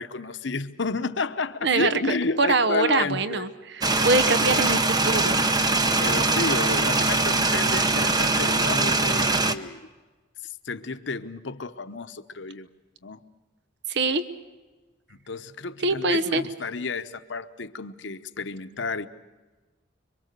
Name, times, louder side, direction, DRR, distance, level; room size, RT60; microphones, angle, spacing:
voice 1, 0.0-3.5 3.9-4.1 4.4-4.7 6.0-9.8 10.4-12.7 13.0-13.2 15.1-19.1, left 3 dB, 65° left, 10 dB, 1.0 m, -31 dB
voice 2, 2.4-5.4 13.9-14.2 15.8-16.4, right 3 dB, 60° right, 12 dB, 1.0 m, -23 dB
sound 1, 3.8-9.5, right 3 dB, 20° right, 0.9 m, -22 dB
26.0 x 24.0 x 6.8 m, 1.2 s
head